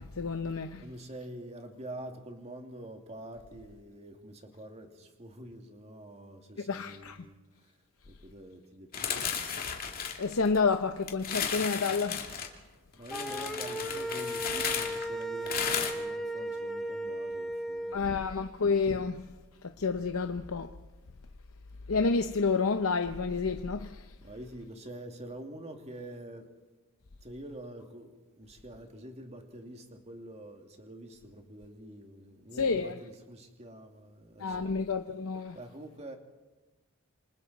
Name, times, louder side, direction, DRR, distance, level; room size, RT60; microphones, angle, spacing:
voice 1, 0.0-0.9 6.7-7.2 10.2-12.3 13.2-13.3 17.9-20.8 21.9-24.1 32.5-33.0 34.4-35.6, left 4 dB, 70° left, 0.8 m, -30 dB
voice 2, 0.8-7.7 8.1-9.6 13.0-18.3 24.2-26.5 27.2-34.8 35.5-36.2, right 1 dB, 30° right, 2.3 m, -46 dB
sound 1, 8.9-10.7 11.1-12.5 13.1-15.9, left 7 dB, 45° left, 2.4 m, -34 dB
sound 2, 13.1-18.0, right 1 dB, ahead, 1.1 m, -36 dB
27.5 x 26.5 x 4.1 m
head